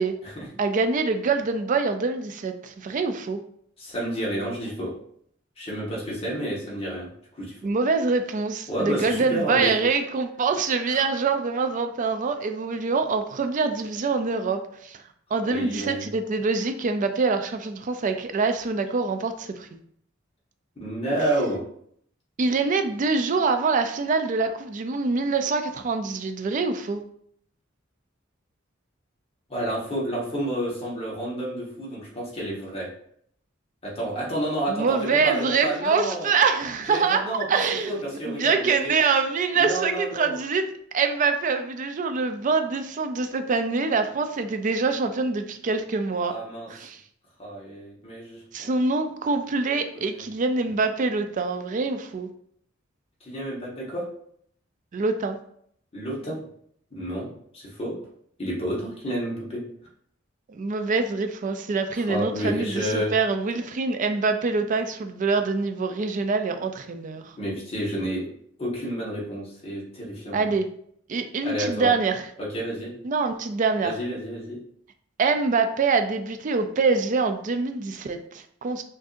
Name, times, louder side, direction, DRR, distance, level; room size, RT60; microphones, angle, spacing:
voice 1, 0.6-3.4 7.6-15.0 15.3-19.8 22.4-27.0 34.7-38.0 38.3-40.7 40.9-46.4 46.7-47.0 48.5-52.3 54.9-55.4 60.5-67.4 70.3-70.7 71.1-72.2 73.0-74.0 75.2-78.8, right 4 dB, 40° right, 7 dB, 0.4 m, -25 dB
voice 2, 3.8-4.9 5.6-7.1 7.4-7.6 8.7-9.7 10.9-11.0 15.4-16.1 20.8-21.6 29.5-32.9 33.8-36.3 36.9-37.5 37.8-38.9 39.5-40.4 46.3-46.7 47.4-48.7 49.9-50.2 53.2-54.1 55.9-56.4 56.9-58.0 58.4-59.6 61.9-63.1 67.4-68.3 68.6-70.5 71.4-71.9 72.4-72.9 73.8-74.6, right 1 dB, 30° left, -4 dB, 1.3 m, -30 dB
6.1 x 2.6 x 2.5 m, 0.65 s
head